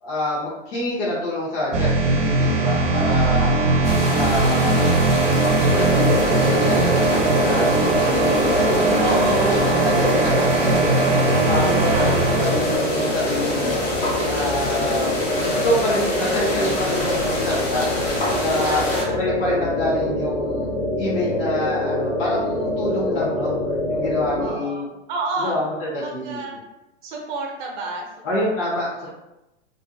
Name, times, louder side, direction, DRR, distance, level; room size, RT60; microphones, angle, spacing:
voice 1, 0.0-3.6 4.1-4.9 5.4-6.8 7.4-11.0 11.5-13.8 14.2-15.3 15.6-17.8 18.4-18.8 19.2-20.7 21.0-24.8 25.4-26.4 28.2-29.1, left 1 dB, 55° left, -7 dB, 0.9 m, -27 dB
sound 1, 1.7-12.8, right 3 dB, 90° right, 0.6 m, -20 dB
sound 2, 3.8-19.0, left 1 dB, 25° left, 0.6 m, -28 dB
sound 3, 5.7-24.5, left 1 dB, 80° left, 0.7 m, -25 dB
voice 2, 9.0-9.7 11.9-12.4 18.6-19.2 24.4-26.6 27.0-28.1 28.3-28.7 29.0-29.1, right 3 dB, 45° right, 0 dB, 0.6 m, -31 dB
2.5 x 2.1 x 2.5 m, 0.95 s
hypercardioid pair, 145°, 35 cm